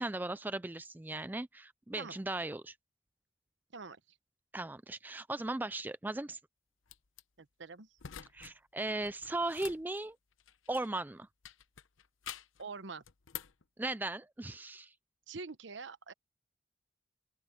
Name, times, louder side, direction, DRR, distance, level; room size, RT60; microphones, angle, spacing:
voice 1, 0.0-2.7 4.5-6.4 8.3-10.2 10.7-11.3 13.8-14.9, right 2 dB, 10° right, 0.3 m, -37 dB
sound 1, 6.9-7.2 8.0-8.5 8.8-11.0 11.4-12.6 13.0-13.6, left 9 dB, 85° left, 0.9 m, -48 dB
voice 2, 7.4-7.9 12.6-13.0 15.3-16.1, right 4 dB, 65° right, 1.0 m, -45 dB
open air
head